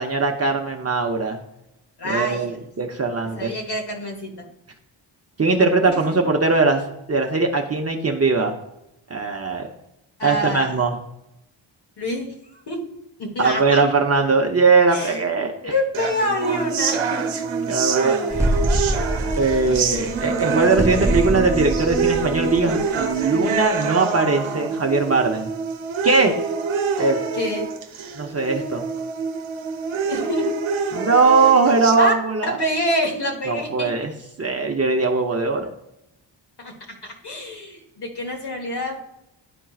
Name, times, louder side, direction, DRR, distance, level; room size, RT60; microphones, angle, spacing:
voice 1, 0.0-1.4 2.0-3.5 5.4-6.8 7.1-8.5 9.1-9.7 10.2-11.0 13.4-15.7 17.7-18.2 18.5-18.6 19.4-25.5 26.0-26.3 27.0-27.2 28.2-28.9 30.9-32.6 33.5-34.1 34.4-35.7, right 4 dB, 35° right, 2 dB, 0.7 m, -20 dB
voice 2, 2.0-2.6 3.4-4.4 5.8-6.1 10.2-10.8 12.0-12.3 12.7-12.8 13.2-13.8 14.9-15.3 15.6-17.2 18.3-18.4 19.6-20.0 27.3-27.7 30.1-30.5 32.0-32.1 32.6-33.9 36.6-36.7 37.0-39.1, left 1 dB, 60° left, 0 dB, 1.4 m, -27 dB
sound 1, 15.9-32.0, right 5 dB, 90° right, 0.9 m, -26 dB
sound 2, 18.3-23.1, right 1 dB, 5° right, 0.4 m, -25 dB
11.0 x 4.4 x 2.4 m, 0.85 s
wide cardioid pair, 105°, 46 cm